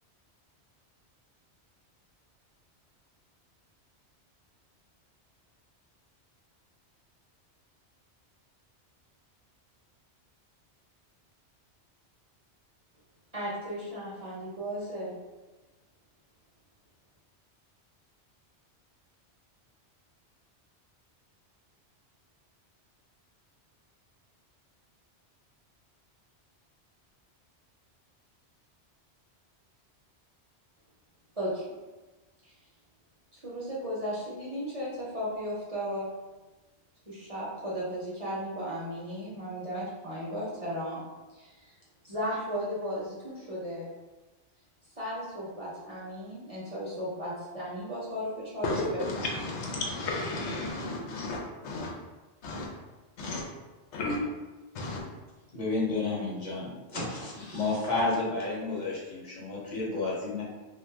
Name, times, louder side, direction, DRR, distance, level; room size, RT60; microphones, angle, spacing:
voice 1, 13.3-15.2 31.4-31.7 32.4-32.5 33.3-36.1 37.1-41.0 41.3-41.7 42.0-43.9 45.0-49.3, equal, 40° right, -8 dB, 0.6 m, -35 dB
voice 2, 48.6-51.9 52.4-52.7 53.2-53.4 53.9-54.2 54.7-55.0, left 2 dB, 80° left, 0 dB, 0.9 m, -33 dB
voice 3, 55.5-60.4, left 3 dB, 45° left, -6 dB, 0.9 m, -31 dB
2.5 x 2.3 x 3.3 m, 1.2 s
omnidirectional pair, 1.2 m